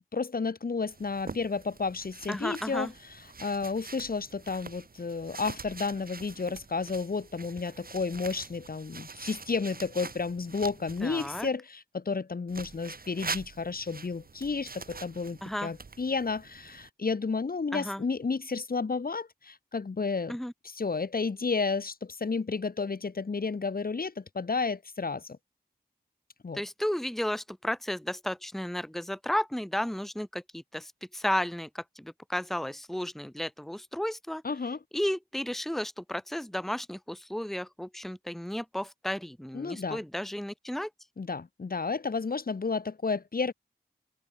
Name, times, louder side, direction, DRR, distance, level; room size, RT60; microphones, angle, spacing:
voice 1, 0.1-20.4 20.6-25.4 26.4-26.6 34.4-34.8 39.5-40.0 41.2-43.5, left 4 dB, 65° left, 2.9 m, -32 dB
sound 1, 0.9-11.5 12.5-16.9, right 4 dB, 65° right, 3.2 m, -44 dB
voice 2, 2.3-2.9 11.0-11.5 15.4-15.7 17.7-18.0 20.3-20.5 26.5-34.4 34.9-40.9, left 1 dB, ahead, 1.1 m, -33 dB
wide cardioid pair, 65°, 16 cm